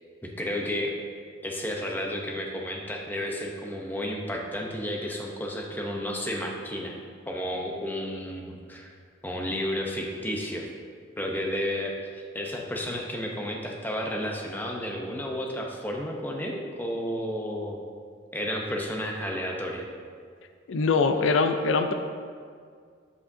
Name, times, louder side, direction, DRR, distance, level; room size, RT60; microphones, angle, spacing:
voice 1, 0.2-0.9 1.4-6.9 7.3-9.0 9.2-10.7 11.2-17.8 18.3-19.8, equal, 10° left, 0 dB, 0.7 m, -32 dB
voice 2, 20.7-21.9, left 4 dB, 70° left, 7 dB, 0.4 m, -23 dB
9.7 x 7.5 x 2.7 m, 2.1 s
head